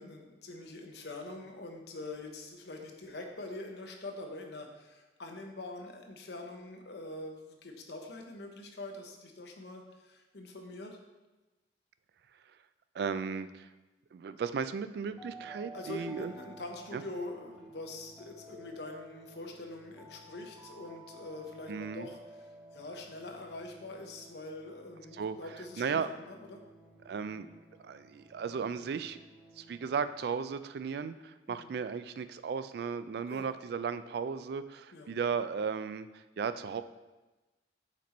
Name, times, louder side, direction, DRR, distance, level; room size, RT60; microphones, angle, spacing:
voice 1, 0.0-11.0 15.7-26.6 31.5-31.7 33.3-33.4 34.9-35.1, left 2 dB, 65° left, 3 dB, 0.8 m, -44 dB
voice 2, 12.9-13.7 14.1-16.3 16.9-17.0 21.7-22.1 25.1-25.4 25.8-26.1 27.0-27.5 27.8-29.2 29.6-36.8, right 6 dB, 60° right, 12 dB, 0.3 m, -35 dB
sound 1, 15.1-30.8, right 1 dB, ahead, 1.0 m, -54 dB
5.9 x 4.3 x 4.2 m, 1.1 s
head